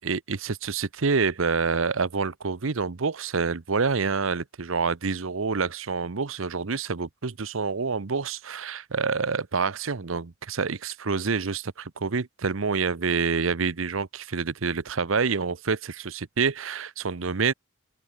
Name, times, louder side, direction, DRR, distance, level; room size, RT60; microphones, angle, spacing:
voice 1, 0.0-17.5, right 5 dB, 70° right, 0.8 m, -27 dB
open air
head